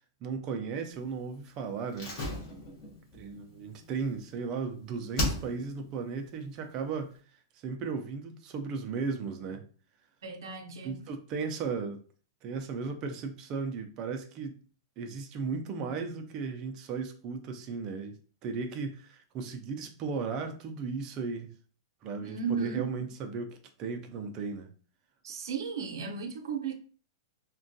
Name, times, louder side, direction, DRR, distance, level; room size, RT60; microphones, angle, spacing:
voice 1, 0.2-2.1 3.1-7.1 7.6-9.6 10.8-12.0 12.4-14.6 15.0-18.2 18.4-21.5 22.0-23.5 23.8-24.7, right 5 dB, 25° right, 0.3 m, -35 dB
Slam, 1.9-4.7 5.1-5.9 6.2-6.3, left 1 dB, 30° left, 0.8 m, -35 dB
voice 2, 10.2-11.0 22.2-22.9 25.2-26.7, right 5 dB, 80° right, 0.6 m, -35 dB
3.4 x 2.2 x 2.6 m
supercardioid pair, 175°, 2 cm